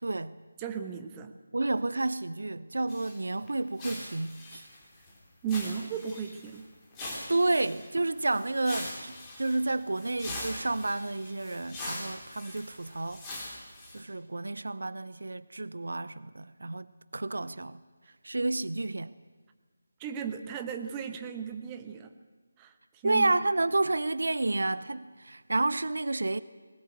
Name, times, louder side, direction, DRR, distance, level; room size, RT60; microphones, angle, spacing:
voice 1, 0.0-0.4 1.5-4.6 7.3-9.1 9.4-13.2 13.9-16.9 17.1-17.8 18.2-19.1 23.0-26.4, right 2 dB, 60° right, 0.6 m, -30 dB
voice 2, 0.6-1.3 5.4-6.6 20.0-22.1 22.6-22.7 23.0-23.3, right 7 dB, 15° right, 1.0 m, -35 dB
sound 1, 2.9-3.2 3.5-3.6 3.8-5.1 5.5-6.6 6.9-14.0, left 1 dB, 10° left, 3.8 m, -42 dB
20.5 x 19.0 x 8.2 m
figure-of-eight pair, 155°, 0 cm